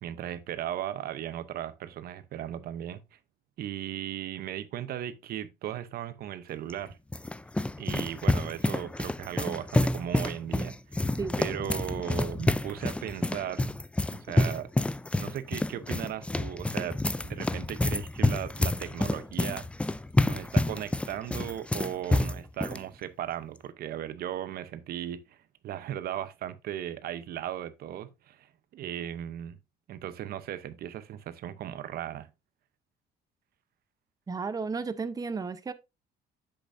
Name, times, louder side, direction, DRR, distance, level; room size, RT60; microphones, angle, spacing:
voice 1, 0.0-3.0 3.6-7.0 7.8-10.7 11.4-13.7 14.1-14.7 15.2-17.0 17.2-25.4 25.6-29.6 29.9-32.3, right 11 dB, 65° right, 0.7 m, -37 dB
sound 1, 6.7-22.8, left 2 dB, 5° left, 0.3 m, -28 dB
voice 2, 11.2-11.5 34.3-35.7, right 4 dB, 20° right, 0.7 m, -33 dB
7.9 x 6.7 x 2.5 m
cardioid pair, 110°, 17 cm